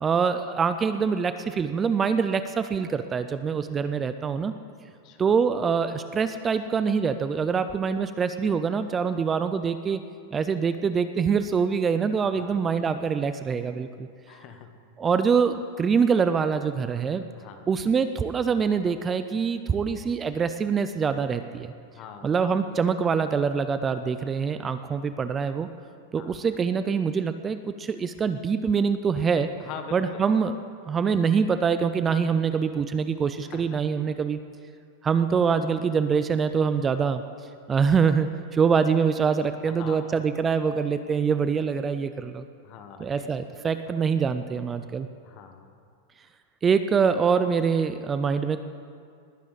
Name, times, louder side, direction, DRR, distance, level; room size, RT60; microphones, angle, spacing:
voice 1, 0.0-4.5 5.2-10.0 10.3-14.1 15.0-17.2 17.7-21.7 22.2-25.7 26.1-29.5 29.9-30.6 30.9-34.4 35.0-37.2 37.7-42.4 43.0-45.1 46.6-48.6, right 6 dB, 20° right, 10 dB, 0.4 m, -24 dB
voice 2, 14.3-14.8 17.4-17.7 21.9-22.3 26.2-26.5 29.6-30.2 33.4-33.8 39.6-40.2 42.6-43.4 43.9-44.0 45.2-45.7, left 7 dB, 40° left, 7 dB, 1.3 m, -43 dB
20.0 x 9.9 x 4.1 m, 2.3 s
supercardioid pair, 140°, 0 cm